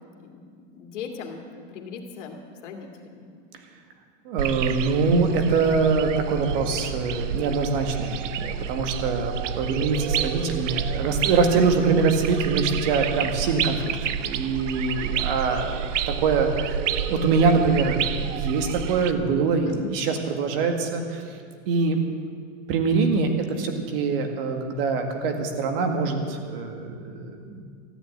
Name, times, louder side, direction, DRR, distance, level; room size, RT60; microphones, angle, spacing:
voice 1, 0.7-3.3 19.7-19.9, left 5 dB, 70° left, 2 dB, 2.5 m, -38 dB
voice 2, 4.3-13.9 14.2-16.8 17.1-21.2 21.7-22.0 22.7-27.6, right 4 dB, 50° right, 4 dB, 1.9 m, -24 dB
sound 1, 4.4-19.1, right 8 dB, 75° right, 0.8 m, -29 dB
14.0 x 9.0 x 8.8 m, 2.1 s
supercardioid pair, 160°, 37 cm